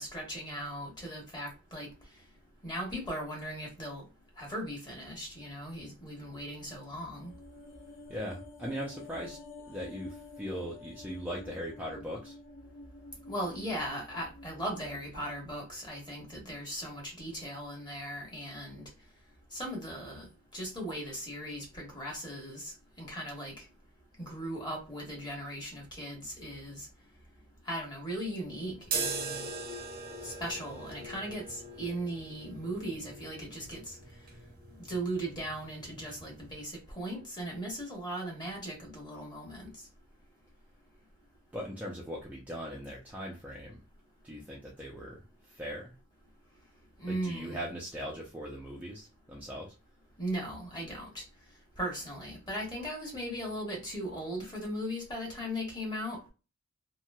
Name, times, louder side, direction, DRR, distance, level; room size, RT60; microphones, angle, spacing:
voice 1, 0.0-1.9 2.6-4.0 4.4-7.3 13.3-18.8 19.5-20.3 20.5-23.5 24.2-26.9 27.7-29.5 30.2-33.9 34.8-39.7 47.0-47.6 50.2-51.2 51.8-56.3, right 1 dB, 20° left, 1.3 m, -38 dB
sound 1, 7.1-15.6 15.9-16.0, left 2 dB, 65° left, 0.7 m, -50 dB
voice 2, 8.1-9.4 9.7-12.4 41.5-43.8 44.2-45.9 47.1-49.7, equal, 5° right, 0.5 m, -40 dB
sound 2, 28.8-36.6, right 4 dB, 40° right, 0.7 m, -41 dB
3.0 x 2.8 x 2.2 m
head